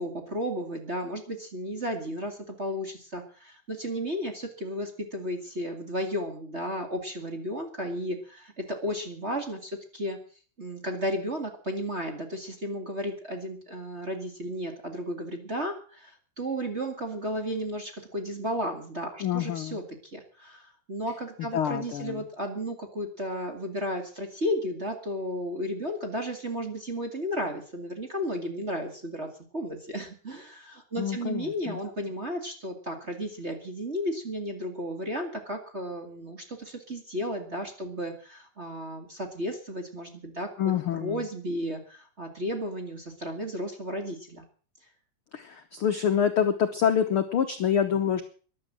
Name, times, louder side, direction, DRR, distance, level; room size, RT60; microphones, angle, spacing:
voice 1, 0.0-10.2 10.6-19.8 20.1-29.3 29.5-40.5 41.0-44.4, equal, 25° right, 4 dB, 2.1 m, -33 dB
voice 2, 19.2-19.8 21.5-22.2 31.0-31.8 40.6-41.2 45.3-48.2, left 8 dB, 70° left, 6 dB, 1.3 m, -26 dB
14.5 x 11.5 x 7.5 m, 0.42 s
omnidirectional pair, 4.0 m